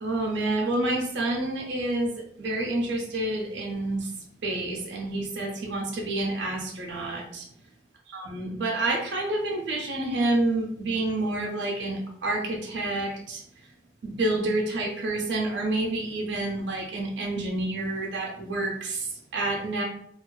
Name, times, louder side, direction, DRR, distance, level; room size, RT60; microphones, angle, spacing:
voice 1, 0.0-4.1 4.4-7.5 8.1-13.4 14.0-19.8, right 2 dB, 75° right, -1 dB, 0.6 m, -28 dB
2.4 x 2.3 x 2.2 m, 0.70 s
head